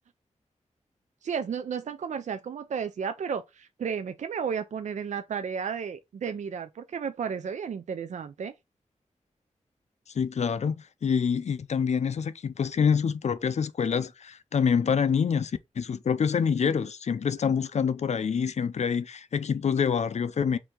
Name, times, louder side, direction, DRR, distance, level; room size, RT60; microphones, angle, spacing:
voice 1, 1.2-8.5, right 6 dB, 70° right, 0.4 m, -33 dB
voice 2, 10.1-20.6, left 6 dB, 65° left, 0.4 m, -26 dB
4.4 x 2.7 x 3.7 m
wide cardioid pair, 125°, 13 cm